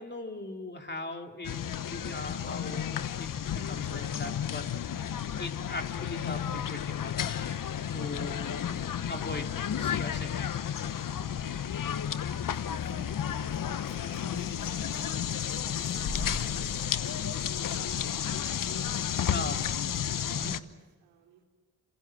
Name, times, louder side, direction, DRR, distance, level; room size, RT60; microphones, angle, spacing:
voice 1, 0.0-7.6 7.9-8.6 9.1-10.7 19.3-19.8 20.3-20.5, left 2 dB, 25° left, 4 dB, 3.2 m, -40 dB
sound 1, 1.4-20.6, left 9 dB, 50° left, 1.2 m, -32 dB
voice 2, 10.6-21.4, right 6 dB, 90° right, 1 dB, 4.3 m, -58 dB
sound 2, 12.4-19.5, left 3 dB, 85° left, 6.5 m, -44 dB
28.5 x 27.0 x 6.1 m, 1.4 s
supercardioid pair, 50°, 40 cm